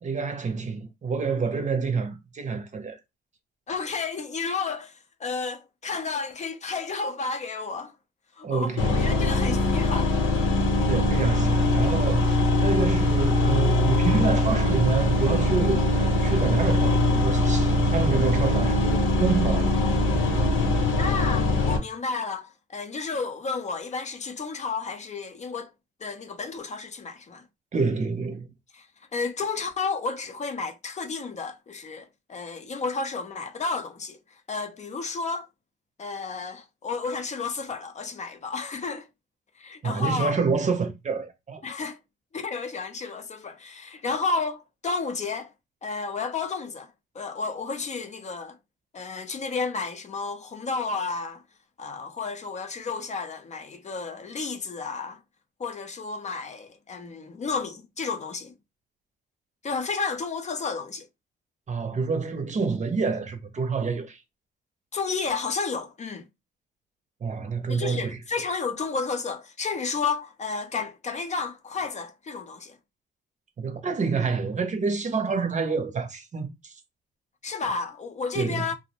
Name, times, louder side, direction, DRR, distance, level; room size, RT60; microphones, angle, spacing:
voice 1, 0.0-3.0 8.4-9.4 10.9-19.7 27.7-28.5 39.8-41.6 61.7-64.2 67.2-68.2 73.6-76.7 78.3-78.6, right 4 dB, 35° right, 0.7 m, -28 dB
voice 2, 3.7-8.0 8.3-10.2 21.0-25.7 26.0-27.5 28.7-35.5 36.0-39.1 39.6-40.4 41.6-42.0 42.3-45.5 45.8-48.6 48.9-51.4 51.8-55.2 55.6-58.5 59.6-61.1 64.9-66.3 67.7-72.8 77.4-78.7, left 4 dB, 35° left, 0.5 m, -32 dB
sound 1, 8.8-21.8, left 1 dB, 90° left, 0.8 m, -22 dB
2.5 x 2.0 x 2.8 m
cardioid pair, 90°, 20 cm